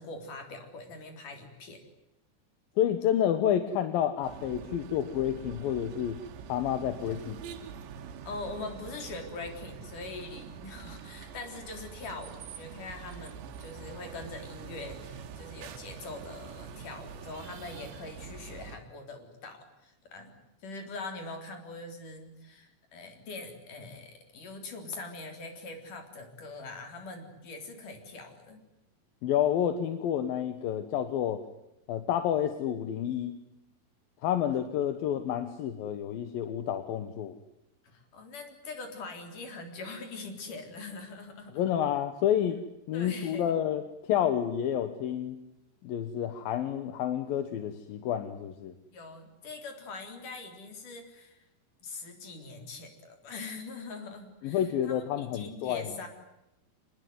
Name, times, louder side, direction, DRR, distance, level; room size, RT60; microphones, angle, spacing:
voice 1, 0.0-1.8 8.3-28.6 37.8-41.6 42.9-43.5 48.9-51.5 51.8-56.1, left 3 dB, 50° left, 5 dB, 5.1 m, -43 dB
voice 2, 2.8-6.2 6.5-7.4 29.2-31.4 31.9-33.4 34.2-37.4 41.5-42.6 42.9-45.4 45.8-48.7 54.4-56.0, left 10 dB, 65° left, 9 dB, 2.7 m, -29 dB
sound 1, 4.2-18.8, right 7 dB, 90° right, 4.0 m, -45 dB
26.0 x 20.5 x 9.5 m, 0.88 s
omnidirectional pair, 5.0 m